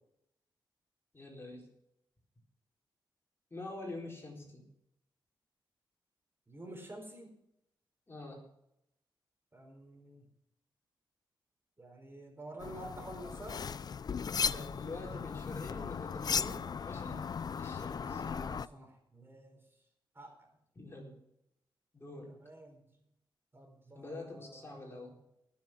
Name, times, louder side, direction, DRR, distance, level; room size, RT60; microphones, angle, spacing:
voice 1, 1.1-1.7 3.5-4.7 8.1-8.4 14.4-17.3 17.5-18.2 20.8-21.1 21.9-22.3 23.9-25.1, left 2 dB, 30° left, -1 dB, 4.3 m, -46 dB
voice 2, 6.5-7.4 9.5-10.3 11.8-13.6 17.9-19.6 20.1-20.5 22.3-22.8 23.5-25.0, right 1 dB, 25° right, 2 dB, 4.2 m, -49 dB
sound 1, 12.6-18.7, left 6 dB, 50° left, 0.4 m, -37 dB
19.5 x 7.2 x 6.0 m, 0.79 s
cardioid pair, 85°, 8 cm